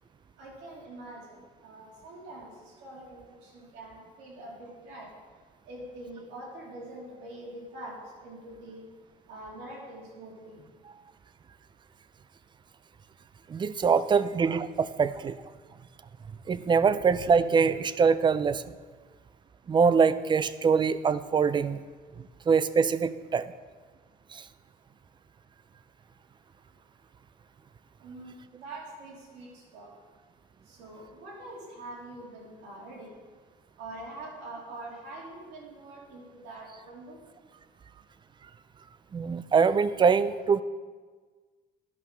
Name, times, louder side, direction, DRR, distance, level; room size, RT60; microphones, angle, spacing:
voice 1, 0.4-5.1 5.6-7.9 8.2-8.8 9.3-10.6 28.0-29.9 30.7-33.1 33.8-37.2, right 2 dB, 90° right, -3 dB, 2.9 m, -44 dB
voice 2, 13.5-15.4 16.5-18.7 19.7-21.8 22.5-23.5 24.3-24.4 39.1-40.6, right 5 dB, 30° right, 15 dB, 0.4 m, -24 dB
10.5 x 5.5 x 6.1 m, 1.5 s
cardioid pair, 110°, 17 cm